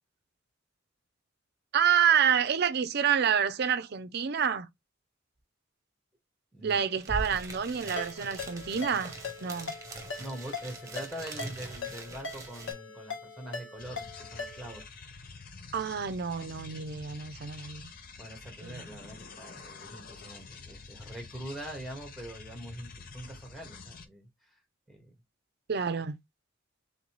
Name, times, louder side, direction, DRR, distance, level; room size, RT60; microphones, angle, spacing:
voice 1, 1.7-4.7 6.6-9.8 15.7-17.9 18.6-18.8 25.7-26.2, right 8 dB, 55° right, 0.5 m, -28 dB
sound 1, 6.7-6.8 7.0-12.7, right 2 dB, 15° right, 1.2 m, -42 dB
Ringtone, 8.0-14.8, left 3 dB, 80° left, 1.3 m, -41 dB
voice 2, 10.2-14.9 18.2-24.3 24.9-25.1, right 1 dB, ahead, 1.5 m, -43 dB
sound 2, 13.8-24.0, left 4 dB, 50° left, 0.7 m, -48 dB
3.9 x 3.6 x 3.0 m
head